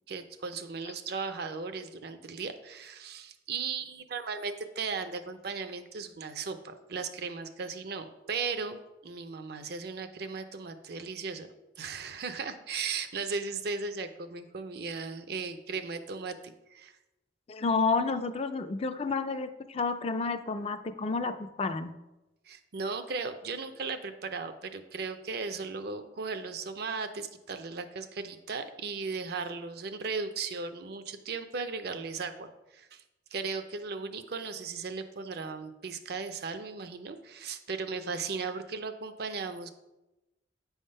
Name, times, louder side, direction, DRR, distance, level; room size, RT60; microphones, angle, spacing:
voice 1, 0.1-8.8 9.0-11.5 11.8-16.9 22.5-33.0 33.3-39.7, right 4 dB, 60° right, 9 dB, 0.6 m, -36 dB
voice 2, 17.5-21.9, left 4 dB, 35° left, 9 dB, 0.4 m, -30 dB
8.4 x 3.6 x 5.4 m, 0.99 s
head